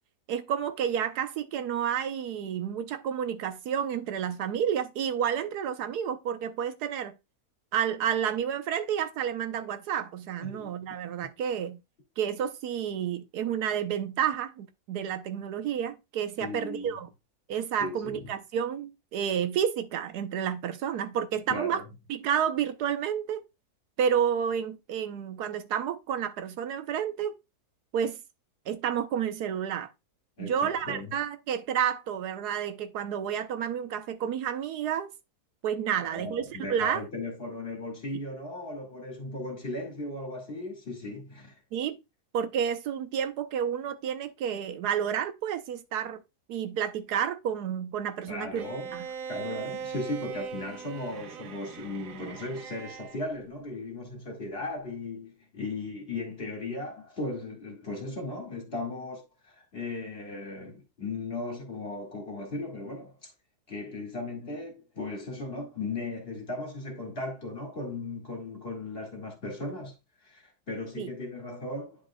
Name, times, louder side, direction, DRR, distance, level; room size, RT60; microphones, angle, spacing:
voice 1, 0.3-7.2 7.7-11.8 12.2-17.1 17.5-21.8 22.1-23.4 24.0-27.3 27.9-28.2 28.7-29.9 30.4-35.1 35.6-37.0 41.7-42.0 42.3-46.2 46.5-48.7 48.9-49.1 71.0-71.1, right 8 dB, 85° right, 1.4 m, -30 dB
voice 2, 16.4-16.9 17.8-18.2 21.5-21.8 30.4-31.1 36.0-41.6 48.3-48.9 49.3-63.3 63.7-69.9 70.2-72.0, left 2 dB, 40° left, 2.2 m, -37 dB
Bowed string instrument, 48.6-53.2, right 6 dB, 65° right, 1.2 m, -40 dB
9.9 x 5.3 x 2.2 m
omnidirectional pair, 1.6 m